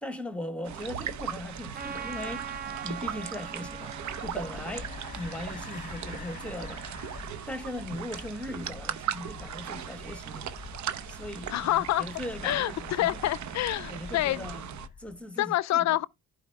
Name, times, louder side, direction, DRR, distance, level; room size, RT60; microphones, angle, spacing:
voice 1, 0.0-2.5 2.8-6.9 7.5-10.5 11.1-13.2 13.9-14.7 15.0-16.0, left 1 dB, 5° left, 1.6 m, -39 dB
sound 1, 0.6-14.9, right 9 dB, 70° right, 0.9 m, -39 dB
sound 2, 0.8-15.2, left 5 dB, 25° left, 1.1 m, -46 dB
Trumpet, 1.7-6.4, right 7 dB, 30° right, 0.7 m, -42 dB
voice 2, 11.5-12.1 12.4-14.5 15.4-16.1, left 14 dB, 65° left, 0.5 m, -27 dB
11.5 x 4.8 x 3.5 m
cardioid pair, 90°, 30 cm